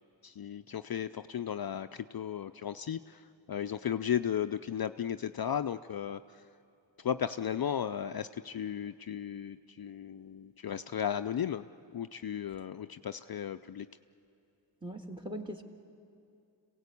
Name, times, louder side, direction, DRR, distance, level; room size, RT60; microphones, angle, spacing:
voice 1, 0.2-6.4 7.0-11.6 11.9-13.9, left 9 dB, 55° left, 10 dB, 0.5 m, -35 dB
voice 2, 14.8-15.6, equal, 10° right, 4 dB, 1.7 m, -40 dB
27.0 x 17.0 x 8.3 m, 2.5 s
wide cardioid pair, 85°, 44 cm